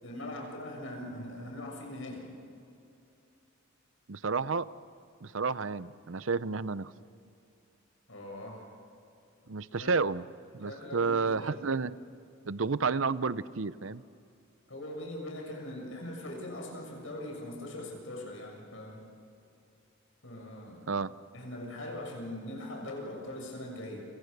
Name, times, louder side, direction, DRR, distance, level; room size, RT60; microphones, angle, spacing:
voice 1, 0.0-2.3 8.1-8.7 9.8-9.9 10.6-11.6 14.7-19.0 20.2-20.8 21.3-24.1, left 1 dB, 70° left, 0 dB, 7.1 m, -41 dB
voice 2, 4.1-4.7 5.2-6.9 9.5-10.2 10.5-12.0 12.4-14.0 20.9-21.1, right 4 dB, 70° right, 16 dB, 0.7 m, -31 dB
30.0 x 26.0 x 6.8 m, 2.7 s
head